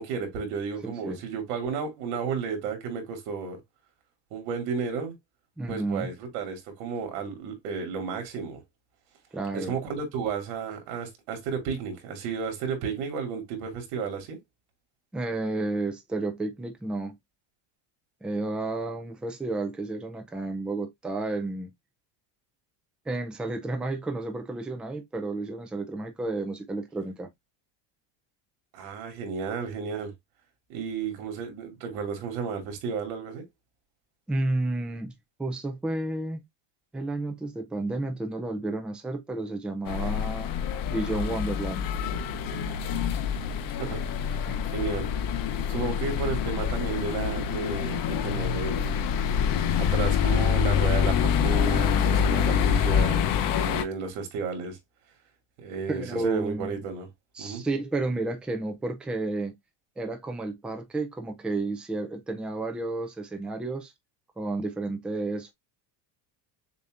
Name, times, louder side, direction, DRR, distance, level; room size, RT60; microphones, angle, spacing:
voice 1, 0.0-3.6 4.3-5.1 5.7-8.6 9.5-14.4 28.7-30.1 30.7-33.4 43.8-44.0 44.4-44.5 44.7-45.1 45.7-49.0 49.8-54.8 55.6-57.1 57.4-57.6, right 6 dB, 85° right, 2.7 m, -33 dB
voice 2, 0.8-1.2 5.6-6.1 9.3-9.8 15.1-17.1 18.2-21.7 23.1-27.3 34.3-35.1 35.4-36.4 36.9-40.5 40.9-41.8 44.5-44.6 55.9-56.7 57.3-59.6 60.0-63.9 64.4-65.5, right 2 dB, ahead, 0.3 m, -31 dB
sound 1, 39.9-53.8, left 8 dB, 45° left, 0.7 m, -26 dB
6.8 x 2.7 x 2.4 m
cardioid pair, 170°, 48 cm